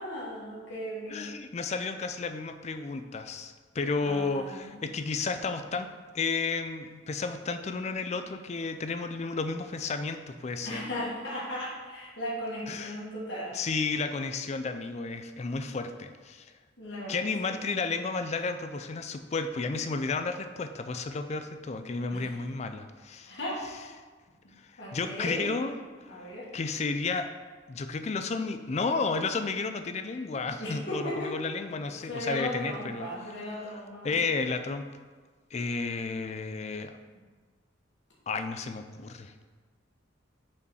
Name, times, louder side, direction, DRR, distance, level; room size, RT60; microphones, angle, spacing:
voice 1, 0.0-1.3 4.0-4.8 10.6-13.6 16.8-17.6 22.1-22.2 23.3-23.6 24.8-25.5 26.1-26.5 30.6-31.3 32.1-34.2, left 1 dB, 60° left, -7 dB, 1.7 m, -36 dB
voice 2, 1.1-5.9 6.1-10.9 12.7-13.0 13.5-16.5 17.1-23.3 24.9-25.7 26.5-27.3 27.7-33.1 33.7-33.8 34.0-34.8 35.5-36.9 38.3-39.3, left 4 dB, 35° left, 8 dB, 0.4 m, -32 dB
5.2 x 5.2 x 4.8 m, 1.4 s
head